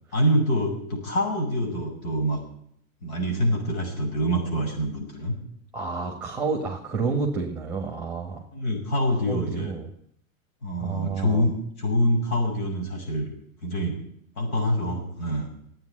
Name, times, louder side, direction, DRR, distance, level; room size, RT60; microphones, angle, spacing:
voice 1, 0.1-2.4 3.0-5.4 8.5-9.7 10.6-13.3 13.6-13.9 14.4-15.5, equal, 85° left, 1 dB, 7.1 m, -25 dB
voice 2, 5.7-8.4 9.2-9.9 10.8-11.5, right 4 dB, 5° right, 1 dB, 1.7 m, -29 dB
12.5 x 9.0 x 9.7 m, 0.69 s
hypercardioid pair, 145°, 41 cm